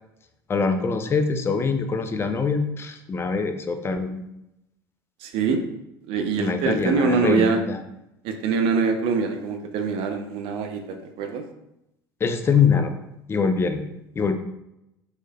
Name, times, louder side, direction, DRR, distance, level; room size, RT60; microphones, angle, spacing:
voice 1, 0.5-4.2 6.4-7.8 12.2-12.9 13.3-13.8 14.2-14.4, left 5 dB, 20° left, 7 dB, 0.4 m, -23 dB
voice 2, 5.2-5.6 6.1-7.6 8.2-11.4, right 5 dB, 50° right, 5 dB, 0.5 m, -24 dB
3.2 x 3.1 x 2.2 m, 0.87 s
figure-of-eight pair, 65°, 12 cm